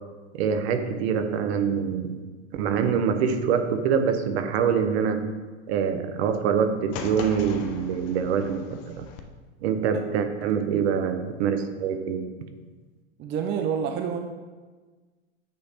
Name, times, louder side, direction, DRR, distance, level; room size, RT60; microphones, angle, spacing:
voice 1, 0.3-2.2 2.5-5.3 5.7-9.1 9.6-12.3, right 7 dB, 60° right, 8 dB, 0.9 m, -25 dB
sound 1, 6.9-9.2, left 6 dB, 45° left, 0.7 m, -38 dB
voice 2, 13.2-14.2, right 7 dB, 30° right, 4 dB, 0.6 m, -28 dB
8.7 x 3.2 x 4.1 m, 1.3 s
hypercardioid pair, 105°, 35 cm